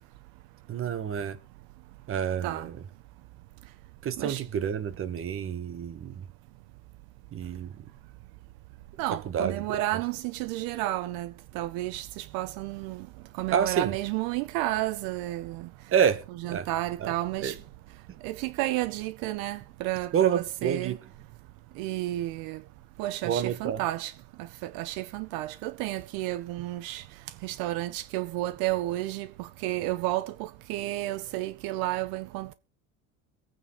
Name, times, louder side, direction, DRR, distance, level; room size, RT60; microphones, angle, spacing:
voice 1, 0.7-1.4 2.1-2.7 4.0-6.3 7.3-7.7 9.3-9.8 13.5-13.9 15.9-16.7 17.0-17.1 17.4-17.5 20.1-21.0 23.2-23.8, right 8 dB, 35° right, 1.2 m, -28 dB
voice 2, 9.0-13.1 13.3-15.7 16.4-17.6 18.2-21.0 21.8-22.6 23.0-24.1 24.4-27.0 27.4-32.5, right 16 dB, 80° right, 0.7 m, -31 dB
23.5 x 9.2 x 3.0 m
cardioid pair, 135°, 36 cm